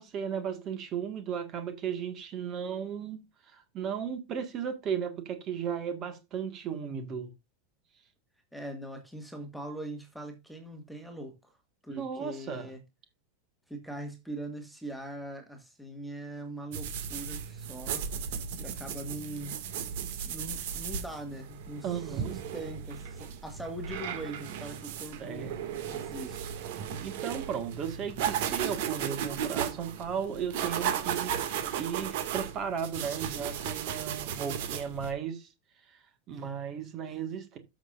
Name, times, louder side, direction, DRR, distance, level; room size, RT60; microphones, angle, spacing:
voice 1, 0.0-7.3 11.9-12.7 21.8-22.4 25.2-25.6 27.0-35.5 35.9-37.6, right 7 dB, 30° right, 1.7 m, -35 dB
voice 2, 8.5-11.6 11.8-12.8 13.7-18.0 18.6-19.6 20.2-25.5 25.9-26.5, right 1 dB, ahead, 1.8 m, -41 dB
sound 1, 16.7-35.1, right 8 dB, 60° right, 2.0 m, -35 dB
13.5 x 6.3 x 2.5 m
supercardioid pair, 150°, 0 cm